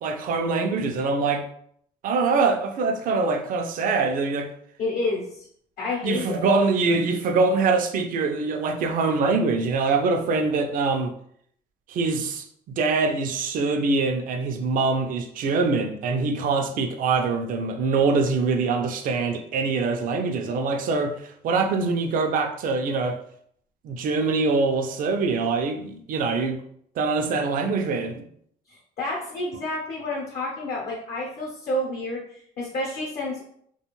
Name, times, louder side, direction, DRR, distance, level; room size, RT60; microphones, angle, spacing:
voice 1, 0.0-1.5 2.0-4.5 6.0-11.1 11.9-23.2 23.8-26.6 27.0-28.2, right 4 dB, 55° right, 0.4 m, -24 dB
voice 2, 4.8-5.5 5.8-6.5 28.7-33.4, left 2 dB, 65° left, 0.8 m, -29 dB
2.4 x 2.3 x 3.0 m
cardioid pair, 110°, 17 cm